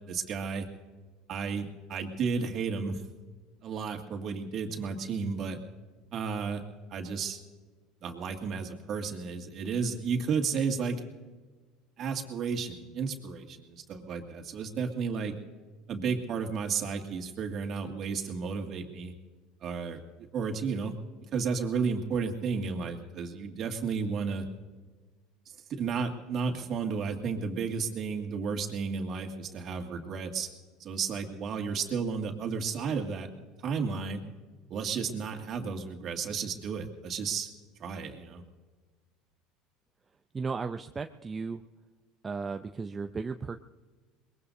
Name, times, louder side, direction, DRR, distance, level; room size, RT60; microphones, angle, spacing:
voice 1, 0.1-0.7 1.3-3.0 3.6-5.6 6.1-6.6 6.9-7.4 8.0-11.0 12.0-15.3 15.9-19.1 19.6-20.0 20.3-20.9 21.3-24.5 25.8-30.5 30.8-33.3 33.6-34.2 34.7-37.5 37.8-38.4, right 5 dB, 45° right, 3 dB, 2.2 m, -32 dB
voice 2, 40.3-41.6 42.2-43.6, right 4 dB, 20° right, 6 dB, 0.6 m, -35 dB
23.5 x 21.0 x 2.7 m, 1.4 s
supercardioid pair, 105°, 0 cm